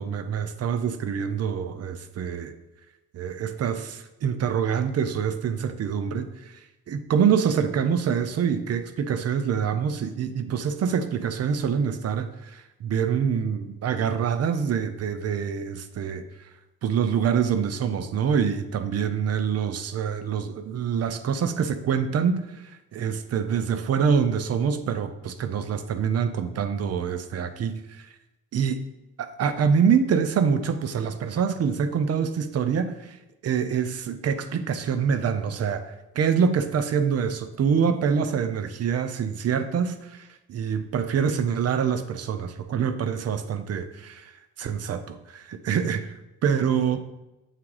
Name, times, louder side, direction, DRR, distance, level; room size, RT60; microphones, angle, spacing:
voice 1, 0.0-2.5 3.1-16.3 16.8-28.1 28.5-28.8 29.2-33.2 33.4-44.3 44.6-46.1 46.4-47.0, right 7 dB, 55° right, 10 dB, 0.6 m, -25 dB
7.5 x 3.6 x 4.8 m, 0.96 s
cardioid pair, 90°, 30 cm